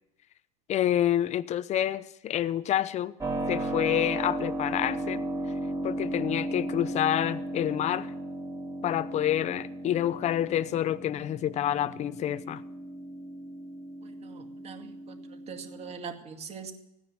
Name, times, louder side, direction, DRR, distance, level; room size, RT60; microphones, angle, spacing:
voice 1, 0.7-3.1 3.5-5.2 5.8-8.1 8.8-12.6, left 11 dB, 35° left, 0.8 m, -28 dB
Keyboard (musical), 3.2-15.9, right 1 dB, 15° right, 2.7 m, -35 dB
voice 2, 14.2-15.2 15.5-16.7, right 6 dB, 35° right, 2.2 m, -42 dB
16.0 x 9.8 x 7.1 m
supercardioid pair, 110°, 19 cm